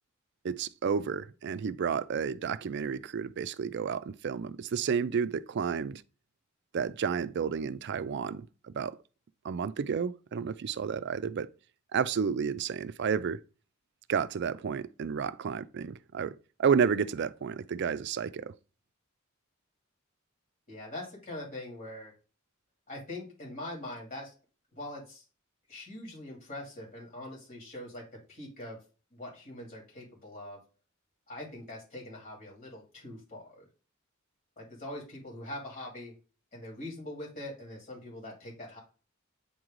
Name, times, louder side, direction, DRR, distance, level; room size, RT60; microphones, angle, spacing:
voice 1, 0.4-6.0 6.7-9.0 9.4-11.5 11.9-13.4 14.1-18.5, right 6 dB, 55° right, 0.4 m, -31 dB
voice 2, 20.7-22.1 22.9-24.3 24.7-25.2 25.7-28.8 29.1-30.6 31.3-33.6 34.6-36.1 36.5-38.8, left 1 dB, 45° left, 2.7 m, -43 dB
8.5 x 3.1 x 3.7 m
head